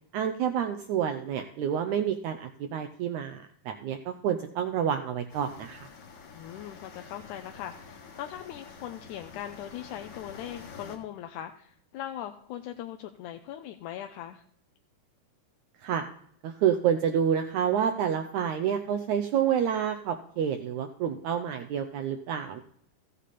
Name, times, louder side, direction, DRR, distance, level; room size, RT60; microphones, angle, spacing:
voice 1, 0.1-5.9 15.8-16.1 16.4-22.6, right 8 dB, 75° right, 6 dB, 1.8 m, -28 dB
sound 1, 5.3-11.0, left 5 dB, 60° left, 2.8 m, -48 dB
voice 2, 6.3-14.4, left 11 dB, 80° left, 5 dB, 1.9 m, -40 dB
14.0 x 8.3 x 4.2 m, 0.65 s
omnidirectional pair, 3.9 m